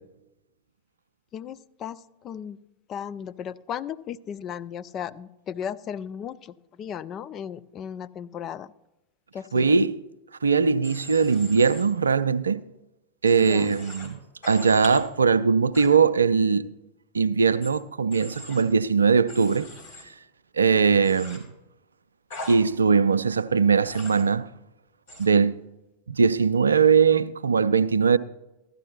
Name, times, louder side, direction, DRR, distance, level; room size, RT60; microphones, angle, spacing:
voice 1, 1.3-2.6 2.9-8.7 9.3-9.7 13.4-13.7, left 8 dB, 30° left, 0.4 m, -36 dB
voice 2, 9.5-10.0 10.4-12.6 13.2-14.2 14.5-16.7 17.1-19.7 20.6-21.5 22.5-24.5 25.2-25.6 26.1-28.2, right 5 dB, 75° right, 0.4 m, -20 dB
Human voice / Train, 10.8-11.8 13.2-14.1 14.4-15.0 15.7-15.9 17.6-17.7 18.1-18.6 19.3-20.0 21.0-21.4 22.3-22.5 23.8-24.2 25.1-25.3, left 1 dB, 60° left, 3.9 m, -41 dB
15.0 x 11.5 x 2.8 m
figure-of-eight pair, 90°, 0 cm